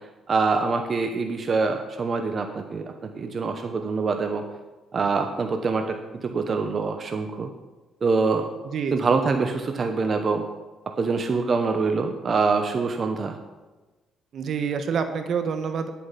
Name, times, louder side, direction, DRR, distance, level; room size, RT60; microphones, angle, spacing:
voice 1, 0.3-4.4 4.9-7.5 8.0-8.5 8.9-10.4 11.0-13.4, right 4 dB, 40° right, 5 dB, 1.0 m, -25 dB
voice 2, 8.6-9.1 14.3-15.9, right 6 dB, 60° right, 8 dB, 1.2 m, -27 dB
10.5 x 8.5 x 5.8 m, 1.2 s
cardioid pair, 90°, 0 cm